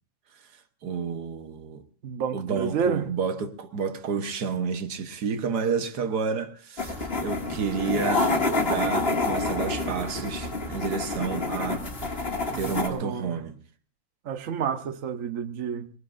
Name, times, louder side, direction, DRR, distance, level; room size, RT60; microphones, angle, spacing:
voice 1, 0.8-1.8 2.3-12.3 12.5-13.6, right 5 dB, 85° right, 1.7 m, -30 dB
voice 2, 2.0-3.1 12.5-13.3 14.2-15.9, right 7 dB, 60° right, 1.4 m, -30 dB
sound 1, 6.8-12.9, left 2 dB, 40° left, 2.5 m, -28 dB
22.5 x 21.5 x 2.5 m
omnidirectional pair, 1.7 m